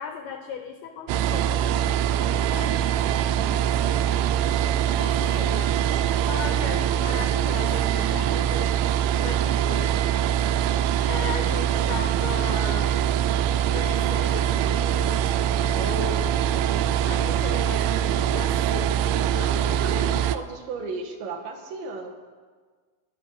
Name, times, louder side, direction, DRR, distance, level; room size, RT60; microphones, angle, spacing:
voice 1, 0.0-2.8 5.0-5.8 6.3-8.7 9.2-10.0 10.4-10.6 11.1-13.0 13.7-16.7 17.0-19.8, left 8 dB, 90° left, 5 dB, 2.2 m, -37 dB
sound 1, 1.1-20.4, right 10 dB, 85° right, 2.6 m, -23 dB
voice 2, 3.1-3.6 19.4-22.1, right 3 dB, 70° right, 3 dB, 3.3 m, -35 dB
18.5 x 11.0 x 6.4 m, 1.5 s
omnidirectional pair, 5.8 m